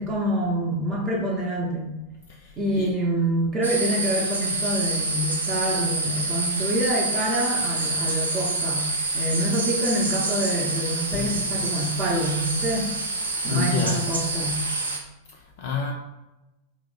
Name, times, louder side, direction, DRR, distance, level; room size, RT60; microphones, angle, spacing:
voice 1, 0.0-1.9 2.6-12.9 13.4-14.7, right 1 dB, 20° right, -4 dB, 0.6 m, -26 dB
voice 2, 2.3-2.9 11.1-11.6 13.5-14.0 15.3-15.9, left 4 dB, 50° left, 0 dB, 0.3 m, -29 dB
sound 1, 3.6-15.0, right 3 dB, 75° right, 0.5 m, -27 dB
2.8 x 2.0 x 3.9 m, 0.98 s
figure-of-eight pair, 90°, 0 cm